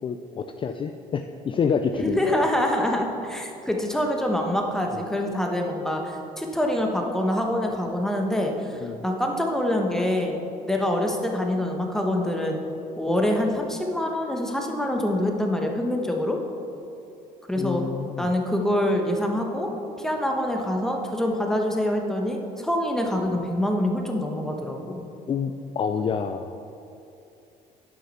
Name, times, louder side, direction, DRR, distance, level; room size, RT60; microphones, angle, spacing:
voice 1, 0.0-2.5 4.9-5.0 8.8-9.0 17.6-18.3 24.9-25.0 25.3-26.6, left 6 dB, 30° left, 7 dB, 0.4 m, -28 dB
voice 2, 2.0-10.4 10.6-12.6 13.0-16.4 17.5-17.8 18.2-19.7 20.0-25.1, left 1 dB, 5° left, 1 dB, 1.2 m, -25 dB
9.2 x 5.7 x 4.2 m, 2.7 s
supercardioid pair, 80°, 16 cm